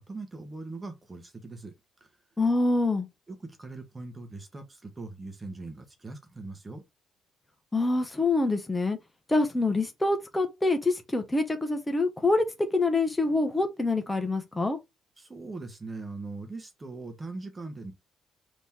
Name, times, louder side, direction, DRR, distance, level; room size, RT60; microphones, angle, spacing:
voice 1, 0.0-2.1 3.3-6.8 15.2-17.9, right 3 dB, 25° right, 1.1 m, -41 dB
voice 2, 2.4-3.1 7.7-9.0 9.3-12.4 12.7-14.8, left 2 dB, 15° left, 0.9 m, -26 dB
3.6 x 3.1 x 4.3 m
cardioid pair, 90°, 0 cm